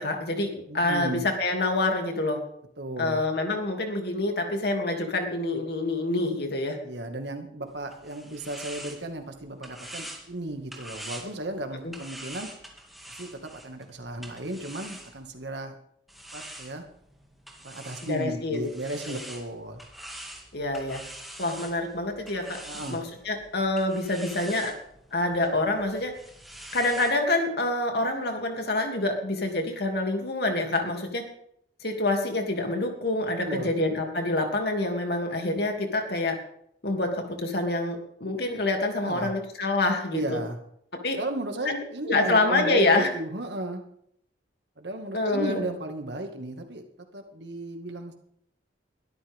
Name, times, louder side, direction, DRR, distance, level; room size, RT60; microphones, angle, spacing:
voice 1, 0.0-2.4 3.0-6.8 11.8-11.9 18.0-18.7 19.1-19.2 20.5-21.0 21.4-24.7 25.1-26.1 26.7-31.3 31.8-36.4 36.8-40.4 41.0-41.2 41.6-43.1 45.1-45.7, left 2 dB, 65° left, 3 dB, 2.8 m, -27 dB
voice 2, 0.7-1.2 2.8-3.2 6.8-12.5 13.2-15.7 16.3-16.8 17.6-19.8 22.7-23.0 33.4-33.7 39.0-39.3 40.1-40.6 41.2-43.8 44.8-46.8 47.1-48.1, right 1 dB, 75° right, 5 dB, 2.1 m, -34 dB
sound 1, 7.7-15.5 16.1-27.2, right 1 dB, ahead, 2.2 m, -45 dB
21.5 x 13.0 x 3.7 m, 0.71 s
head